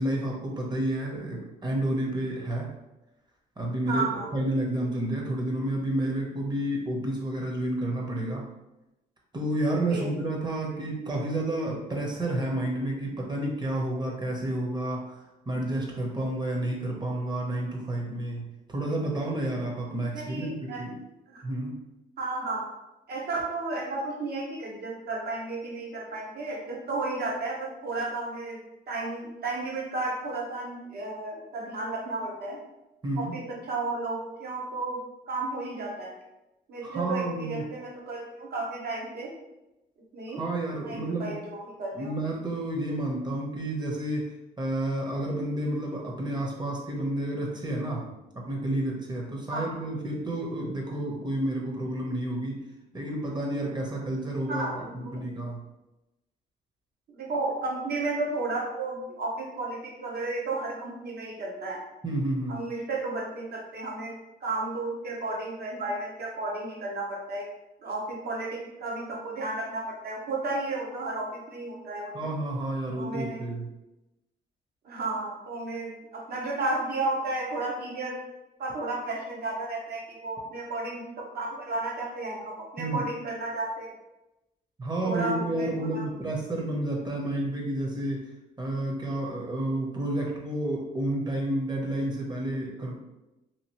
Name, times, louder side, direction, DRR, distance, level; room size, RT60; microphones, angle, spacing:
voice 1, 0.0-2.7 3.6-8.5 9.3-20.9 21.4-21.7 33.0-33.3 36.8-37.6 40.3-41.3 41.9-44.3 44.6-48.1 48.3-52.6 52.9-55.6 62.0-62.6 72.1-73.7 82.8-83.1 84.8-88.3 88.6-92.9, right 1 dB, 20° right, -1 dB, 0.9 m, -30 dB
voice 2, 3.9-4.3 9.9-10.1 20.1-20.9 21.3-21.4 22.2-22.6 23.1-28.6 28.9-32.6 33.2-35.0 35.3-36.1 36.7-39.3 40.1-40.4 40.8-42.1 49.5-49.8 54.5-55.2 57.1-61.8 62.5-64.1 64.4-67.4 67.8-72.3 72.9-73.4 74.8-78.2 78.6-83.9 84.9-86.1, right 2 dB, 55° right, -2 dB, 1.0 m, -33 dB
2.9 x 2.5 x 2.9 m, 0.97 s
cardioid pair, 85°, 19 cm